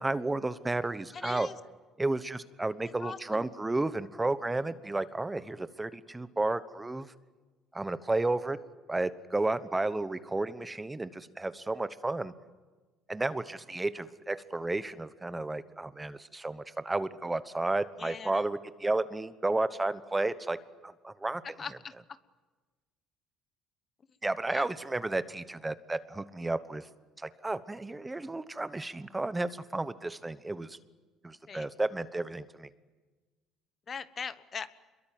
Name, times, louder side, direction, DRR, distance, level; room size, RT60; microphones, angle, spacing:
voice 1, 0.0-1.5 2.0-7.1 7.7-8.6 8.9-12.3 13.1-20.6 20.8-21.4 24.2-26.9 27.2-30.8 31.2-32.7, right 2 dB, 10° right, 13 dB, 1.0 m, -32 dB
voice 2, 1.1-1.6 3.0-3.4 18.0-18.4 21.6-22.2 24.5-24.7 31.5-31.7 33.9-34.7, left 6 dB, 35° left, 14 dB, 1.1 m, -40 dB
27.0 x 22.5 x 9.3 m, 1.3 s
cardioid pair, 125°, 0 cm